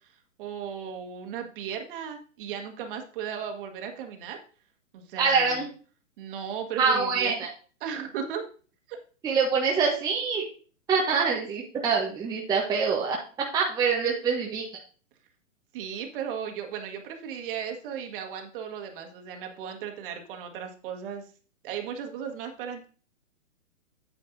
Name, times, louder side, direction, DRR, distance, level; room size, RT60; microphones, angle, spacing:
voice 1, 0.4-4.4 4.9-5.6 6.2-7.3 7.8-8.4 8.9-9.0 15.7-21.3 21.6-22.9, right 8 dB, 40° right, 4 dB, 1.5 m, -36 dB
voice 2, 5.2-5.7 6.8-7.5 9.2-10.4 10.9-13.2 13.5-14.6, right 5 dB, 10° right, -2 dB, 0.8 m, -25 dB
9.0 x 7.6 x 2.6 m, 0.40 s
hypercardioid pair, 130°, 39 cm